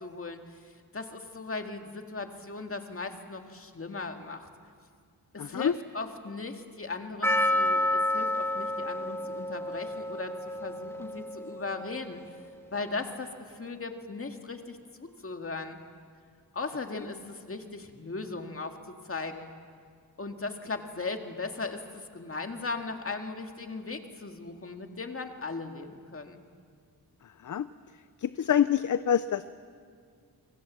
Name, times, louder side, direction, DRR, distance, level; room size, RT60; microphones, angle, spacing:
voice 1, 0.0-4.5 5.3-12.2 12.7-15.8 16.5-19.5 20.2-26.4, left 3 dB, 35° left, 5 dB, 2.0 m, -38 dB
voice 2, 5.4-5.8 16.9-17.0 27.2-27.7 28.2-29.5, left 9 dB, 50° left, 13 dB, 0.6 m, -27 dB
Percussion, 7.2-12.2, left 1 dB, 5° left, 1.6 m, -30 dB
28.0 x 24.5 x 7.4 m, 2.1 s
wide cardioid pair, 145°, 39 cm